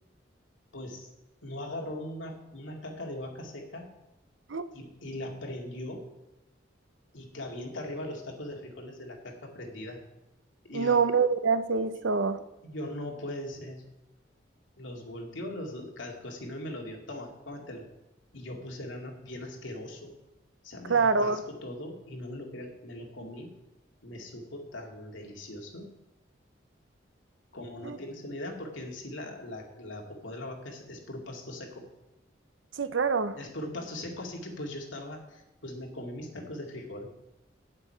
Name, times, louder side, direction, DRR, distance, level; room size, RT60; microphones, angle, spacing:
voice 1, 0.7-1.1 1.4-3.9 4.7-6.0 7.1-10.0 10.6-11.0 12.6-13.8 14.8-17.9 18.3-20.2 20.6-23.5 24.0-25.9 27.5-31.8 33.3-37.1, left 1 dB, 80° left, 2.2 m, -40 dB
voice 2, 10.7-12.4 20.9-21.4 27.8-28.0 32.8-33.4, right 5 dB, 75° right, 0.7 m, -25 dB
9.2 x 7.7 x 5.7 m
head